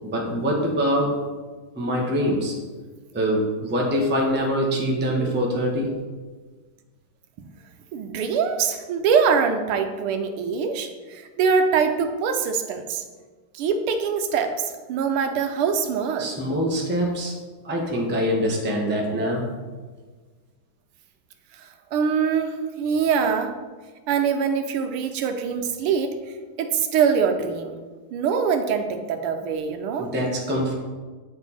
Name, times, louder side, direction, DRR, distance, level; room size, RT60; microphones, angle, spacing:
voice 1, 0.0-1.3 1.7-2.5 3.1-5.9 16.2-17.3 17.6-19.5 30.0-30.7, equal, 10° right, -1 dB, 0.6 m, -24 dB
voice 2, 7.9-13.0 13.5-16.3 21.6-23.5 24.1-26.1 26.6-27.8 28.1-30.1, right 6 dB, 85° right, 7 dB, 1.6 m, -23 dB
8.4 x 4.5 x 4.2 m, 1.4 s
omnidirectional pair, 2.4 m